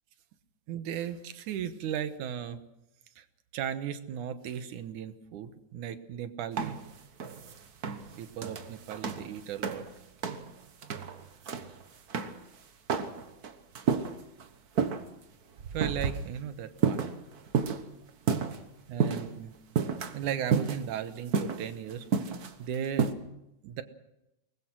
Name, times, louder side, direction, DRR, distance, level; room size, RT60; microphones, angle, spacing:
voice 1, 0.7-2.6 3.2-3.3 3.5-6.8 8.2-9.8 15.7-17.0 18.9-19.5 20.1-22.1 22.6-23.1 23.6-23.8, right 9 dB, 85° right, 10 dB, 2.6 m, -36 dB
sound 1, 6.6-10.0 10.2-10.5 10.8-11.8 12.1-12.4 12.9-14.4 14.8-15.0 15.6-16.4 16.8-18.6 19.0-19.3 19.8-21.1 21.3-23.1, right 6 dB, 60° right, 0.9 m, -31 dB
23.0 x 20.0 x 6.2 m, 0.89 s
omnidirectional pair, 3.4 m